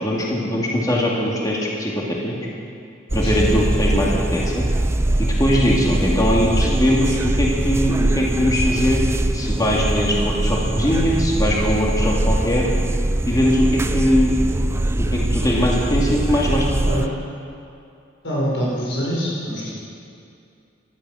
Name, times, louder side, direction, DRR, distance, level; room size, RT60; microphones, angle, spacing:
voice 1, 0.0-2.3 3.1-4.7 5.2-12.7 13.3-14.4 15.1-16.8, equal, 20° left, -3 dB, 2.2 m, -21 dB
sound 1, 3.1-17.1, right 1 dB, 15° right, 0.4 m, -22 dB
voice 2, 18.2-19.7, equal, 90° left, -6 dB, 5.2 m, -25 dB
17.5 x 12.5 x 6.3 m, 2.5 s
head